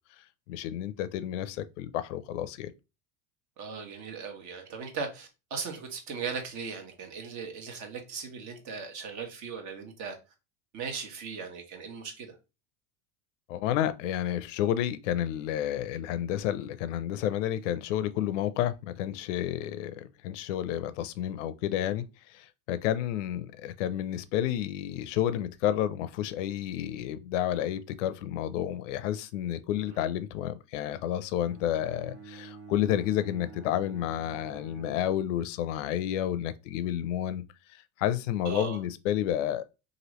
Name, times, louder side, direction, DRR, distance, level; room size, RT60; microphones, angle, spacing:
voice 1, 0.5-2.7 13.5-37.4 37.7-39.7, left 11 dB, 85° left, 0.5 m, -30 dB
voice 2, 3.6-10.2 10.7-12.3 29.9-30.0 38.4-38.8, right 5 dB, 50° right, 1.1 m, -38 dB
Bowed string instrument, 31.4-35.7, right 4 dB, 80° right, 1.6 m, -48 dB
3.0 x 2.5 x 3.0 m
supercardioid pair, 115°, 36 cm